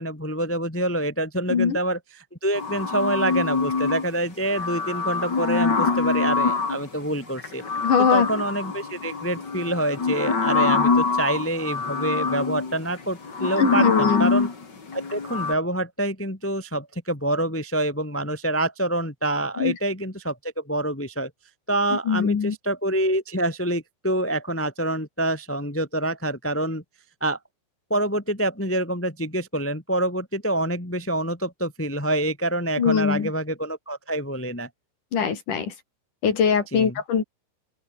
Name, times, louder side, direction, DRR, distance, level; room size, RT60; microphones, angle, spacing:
voice 1, 0.0-2.0 2.4-7.6 8.0-14.5 14.9-21.3 21.7-26.8 27.2-27.4 27.9-34.7 36.7-36.9, right 1 dB, 10° left, 0.7 m, -26 dB
sound 1, 2.5-4.1 4.4-6.9 7.4-15.5, left 4 dB, 25° left, 2.7 m, -25 dB
voice 2, 7.8-8.3 13.6-14.4 19.6-19.8 22.1-22.5 32.8-33.3 35.1-35.7 36.2-37.2, left 6 dB, 45° left, 4.2 m, -21 dB
open air
omnidirectional pair, 5.8 m